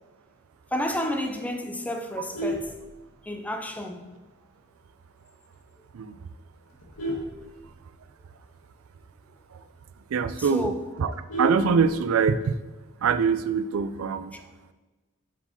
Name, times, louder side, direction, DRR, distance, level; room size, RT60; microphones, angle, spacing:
voice 1, 0.7-2.7 3.2-4.0 10.4-10.7 14.3-14.4, left 1 dB, 5° left, 0.5 m, -31 dB
Vehicle horn car horn honking, 2.1-3.5 4.0-4.3 4.6-4.7 5.1-5.2 5.5-5.8 6.4-8.2 8.6-8.7 9.0-9.1 9.5-9.6 9.9-10.0 10.3-12.3 13.5-14.0, right 1 dB, 80° left, 1.6 m, -34 dB
voice 2, 10.1-10.7 11.0-12.6 13.0-14.4, right 5 dB, 70° right, 0.4 m, -24 dB
5.7 x 4.6 x 4.3 m
head